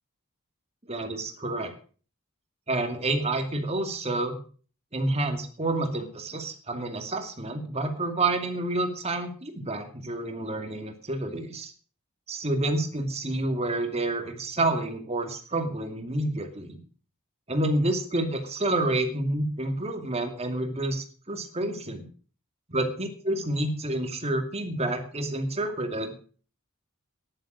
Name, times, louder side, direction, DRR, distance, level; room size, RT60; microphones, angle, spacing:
voice 1, 0.8-1.7 2.7-4.4 4.9-11.7 12.3-16.8 17.5-22.0 22.7-26.2, right 2 dB, 30° right, 4 dB, 2.5 m, -29 dB
11.5 x 11.0 x 6.4 m, 0.40 s
head